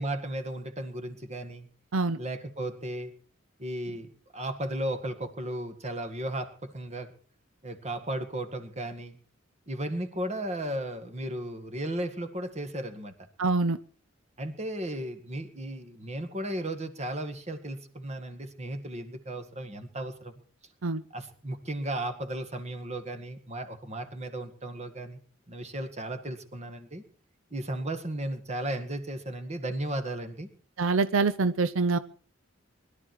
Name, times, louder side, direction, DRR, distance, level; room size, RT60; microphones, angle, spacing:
voice 1, 0.0-1.7 2.2-3.1 3.6-7.1 7.6-9.2 9.7-13.1 14.4-20.3 21.1-25.2 25.5-27.0 27.5-30.5, right 1 dB, 35° right, 8 dB, 1.9 m, -35 dB
voice 2, 13.4-13.8 20.8-21.0 30.8-32.0, right 3 dB, 85° right, 12 dB, 0.7 m, -25 dB
20.5 x 12.5 x 4.7 m, 0.43 s
head